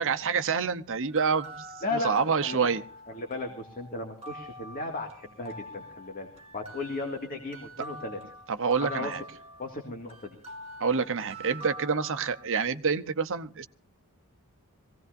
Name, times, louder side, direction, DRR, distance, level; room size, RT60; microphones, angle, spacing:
voice 1, 0.0-1.7 2.0-2.8 8.5-9.2 10.8-13.7, right 5 dB, 60° right, 0.8 m, -27 dB
sound 1, 1.1-12.4, right 1 dB, 30° right, 2.1 m, -45 dB
voice 2, 1.8-2.6 3.1-6.3 6.5-8.2 8.8-9.1 9.6-10.4, left 2 dB, 40° left, 2.2 m, -35 dB
23.5 x 17.0 x 2.6 m
head